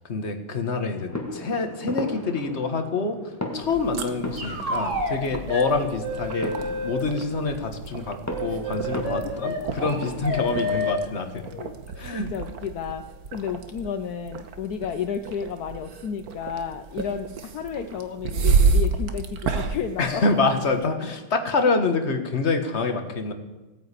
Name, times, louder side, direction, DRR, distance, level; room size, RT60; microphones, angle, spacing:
voice 1, 0.1-3.2 3.5-6.5 6.8-11.5 12.0-12.3 20.0-23.3, left 3 dB, 35° left, 6 dB, 1.6 m, -26 dB
sound 1, 1.1-11.0, left 1 dB, 10° left, 1.4 m, -37 dB
sound 2, 3.6-20.8, right 4 dB, 50° right, 1.4 m, -30 dB
sound 3, 4.3-5.2 5.5-5.7 6.0-7.0 8.3-11.0, left 1 dB, 35° right, 2.8 m, -29 dB
voice 2, 9.4-9.7 11.4-11.7 12.1-13.0 13.3-20.2, left 7 dB, 65° left, 8 dB, 1.0 m, -32 dB
17.0 x 9.6 x 8.4 m, 1.1 s
omnidirectional pair, 2.4 m